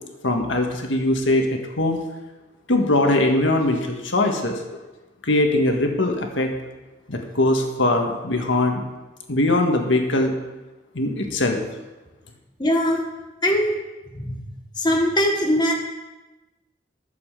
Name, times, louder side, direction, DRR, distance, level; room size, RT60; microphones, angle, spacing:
voice 1, 0.2-2.0 2.7-4.6 5.2-6.5 7.1-8.8 9.3-10.3 10.9-11.6, left 2 dB, 80° left, 3 dB, 1.6 m, -21 dB
voice 2, 12.6-13.0 13.4-13.8 14.1-14.4 14.8-15.7, equal, 25° left, 1 dB, 1.4 m, -21 dB
12.5 x 7.1 x 6.8 m, 1.1 s
head